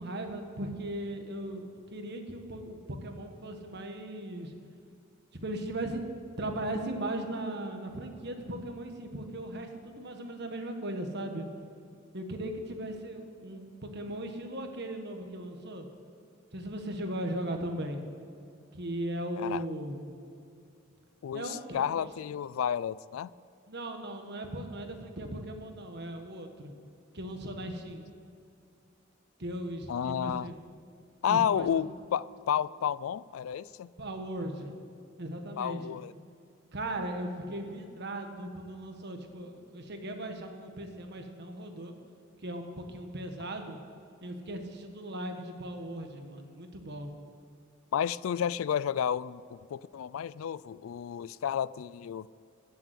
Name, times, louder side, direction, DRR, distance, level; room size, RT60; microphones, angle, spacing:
voice 1, 0.0-4.5 5.4-6.1 6.4-11.5 12.1-15.9 16.5-18.0 18.7-20.0 21.3-22.1 23.7-26.7 27.1-28.1 29.4-30.5 31.3-31.7 34.0-34.7 35.2-36.0 36.7-41.9 42.4-43.8 44.2-47.1, right 1 dB, 55° right, 1.5 m, -38 dB
voice 2, 21.2-23.3 29.9-30.5 31.2-33.9 35.6-36.1 47.9-52.3, left 8 dB, 80° left, 0.3 m, -31 dB
15.5 x 7.2 x 8.3 m
head